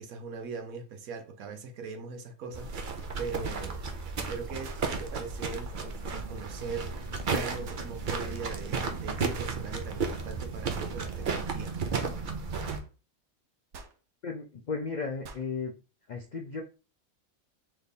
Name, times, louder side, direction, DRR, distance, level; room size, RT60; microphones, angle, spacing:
voice 1, 0.0-3.8 4.3-11.7, right 5 dB, 85° right, 1.2 m, -40 dB
sound 1, 2.5-12.8, right 4 dB, 45° right, 0.7 m, -34 dB
sound 2, 3.4-3.5 4.6-5.0 7.6-7.9 9.3-9.6 10.7-10.9 12.7-12.9 13.7-14.0 15.2-15.5, right 4 dB, 65° right, 1.0 m, -47 dB
voice 2, 14.2-15.7 16.1-16.6, left 4 dB, 85° left, 0.4 m, -35 dB
3.4 x 3.3 x 4.1 m
omnidirectional pair, 1.4 m